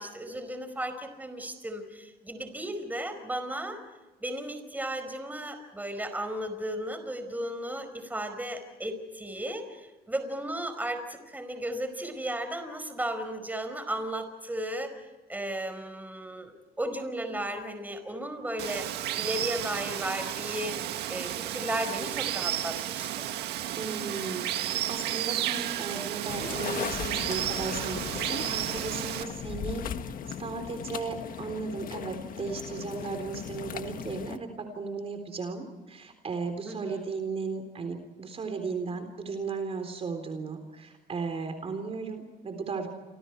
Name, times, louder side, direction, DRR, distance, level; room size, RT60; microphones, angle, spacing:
voice 1, 0.0-3.8 4.2-14.9 15.3-18.9 19.2-23.3 36.6-37.0, right 1 dB, 10° right, 8 dB, 4.8 m, -35 dB
Water, 18.6-29.2, right 12 dB, 80° right, 1.8 m, -33 dB
voice 2, 23.8-29.9 30.3-42.9, right 4 dB, 35° right, 6 dB, 3.8 m, -35 dB
sound 1, 26.3-34.4, left 9 dB, 55° left, 1.6 m, -37 dB
29.5 x 26.5 x 4.6 m, 1.2 s
cardioid pair, 110°, 17 cm